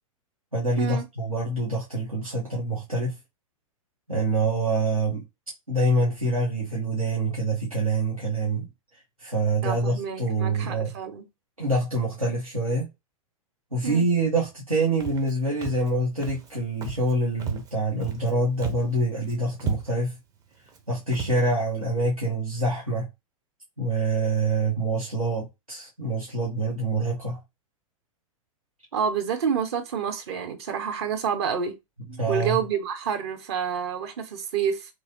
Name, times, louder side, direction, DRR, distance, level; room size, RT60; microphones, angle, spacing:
voice 1, 0.5-3.2 4.1-5.2 5.7-8.7 9.2-10.9 11.6-12.9 13.7-20.2 20.9-23.1 23.8-27.4 32.1-32.6, right 2 dB, 85° right, 1.1 m, -26 dB
voice 2, 9.6-11.2 13.8-14.0 28.9-31.7 32.3-34.9, right 7 dB, 50° right, 0.8 m, -28 dB
Walk footsteps, 15.0-15.3 15.6-15.9 16.2-16.5 16.8-17.1 17.4-18.3 18.6-18.9 19.2-19.3 19.6-20.1 20.7-20.8 21.1-21.4, right 5 dB, 20° right, 0.5 m, -33 dB
3.2 x 2.6 x 2.7 m
figure-of-eight pair, 95°, 18 cm